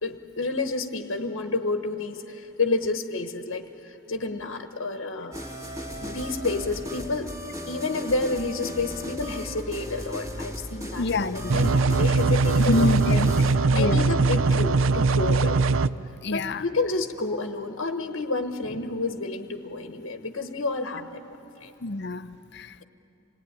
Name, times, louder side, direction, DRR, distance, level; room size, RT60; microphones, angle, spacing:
voice 1, 0.0-5.4 6.0-7.3 7.7-13.2 13.5-15.6 16.3-21.2 21.6-21.7, left 3 dB, 80° left, 6 dB, 1.2 m, -30 dB
sound 1, 5.3-13.5, left 1 dB, 15° right, 2.3 m, -36 dB
voice 2, 10.9-11.6 12.7-13.5 13.7-14.1 16.2-16.6 21.8-22.8, left 2 dB, 55° left, 12 dB, 0.7 m, -27 dB
sound 2, 11.5-15.9, right 3 dB, 75° right, 0.5 m, -21 dB
27.0 x 19.0 x 9.6 m, 2.9 s
head